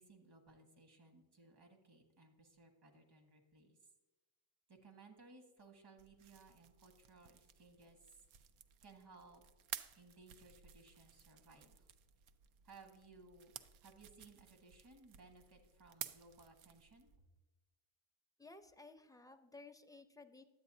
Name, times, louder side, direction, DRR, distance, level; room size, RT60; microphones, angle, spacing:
voice 1, 0.0-3.8 4.7-8.2 8.8-9.4 9.9-11.9 12.6-13.5 13.8-17.1, right 3 dB, 55° right, 5 dB, 1.6 m, -61 dB
Popping bubblewrap, 6.0-17.2, right 9 dB, 75° right, 0.6 m, -54 dB
voice 2, 18.4-20.4, left 3 dB, 10° left, 7 dB, 0.5 m, -57 dB
10.5 x 7.9 x 2.7 m, 1.1 s
cardioid pair, 85°, 48 cm